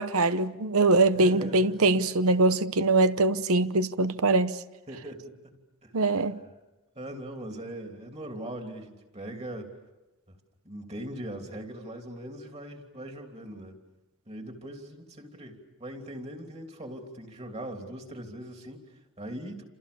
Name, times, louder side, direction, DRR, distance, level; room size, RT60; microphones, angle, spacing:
voice 1, 0.0-4.6 5.9-6.4, right 2 dB, 75° right, 0.9 m, -23 dB
voice 2, 1.1-2.0 4.2-4.3 4.9-6.3 6.9-9.7 10.6-13.7 14.3-19.6, right 1 dB, 30° right, 3.2 m, -41 dB
29.0 x 27.0 x 7.0 m
head